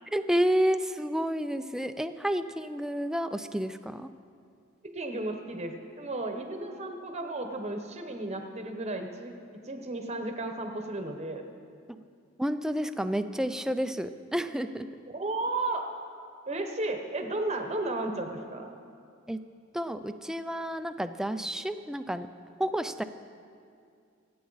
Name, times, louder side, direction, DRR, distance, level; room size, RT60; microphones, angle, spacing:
voice 1, 0.1-4.1 12.4-14.9 19.3-19.4 19.7-22.3 22.6-23.0, equal, 5° right, 10 dB, 0.4 m, -30 dB
voice 2, 4.8-9.3 9.6-11.4 15.1-15.8 16.5-18.7, right 2 dB, 35° right, 5 dB, 0.9 m, -34 dB
25.0 x 8.5 x 4.0 m, 2.3 s
head